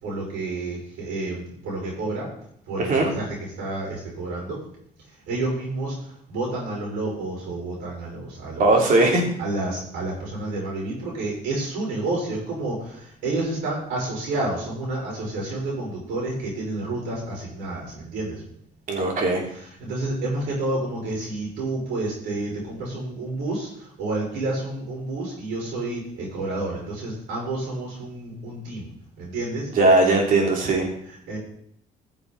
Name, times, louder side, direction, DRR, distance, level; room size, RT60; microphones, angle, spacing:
voice 1, 0.0-2.3 2.7-4.6 5.3-5.9 6.3-8.8 9.4-18.4 19.5-28.9 29.2-29.7 31.0-31.4, right 2 dB, 90° right, -4 dB, 5.1 m, -30 dB
voice 2, 2.8-3.1 8.6-9.3 18.9-19.4 29.7-30.9, right 2 dB, 55° right, 1 dB, 3.3 m, -19 dB
14.5 x 7.1 x 4.1 m, 0.68 s
cardioid pair, 110°, 17 cm